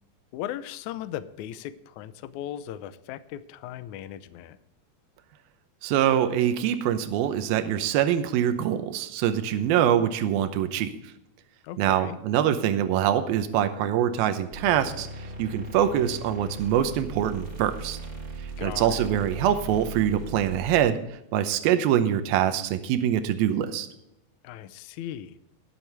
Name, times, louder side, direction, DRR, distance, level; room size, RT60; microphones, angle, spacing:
voice 1, 0.3-4.6 11.6-12.2 18.6-19.1 24.4-25.4, left 11 dB, 85° left, 12 dB, 1.7 m, -37 dB
voice 2, 5.8-11.0 11.8-18.0 18.4-21.0 21.3-23.9, right 10 dB, 85° right, 9 dB, 2.7 m, -24 dB
sound 1, 14.5-20.8, right 3 dB, 40° right, 2.6 m, -38 dB
20.5 x 7.6 x 3.4 m, 0.84 s
omnidirectional pair, 4.3 m